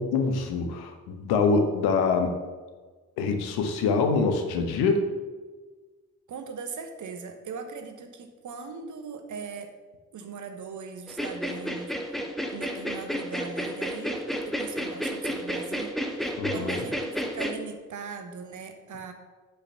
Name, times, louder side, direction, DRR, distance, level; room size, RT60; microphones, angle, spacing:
voice 1, 0.0-2.4 3.2-5.1 16.4-16.8, left 4 dB, 60° left, 6 dB, 1.3 m, -25 dB
voice 2, 6.3-9.7 10.1-19.1, right 5 dB, 45° right, 6 dB, 1.3 m, -40 dB
sound 1, 11.1-17.5, equal, ahead, 1.1 m, -31 dB
8.4 x 5.7 x 5.8 m, 1.4 s
figure-of-eight pair, 40°, 43 cm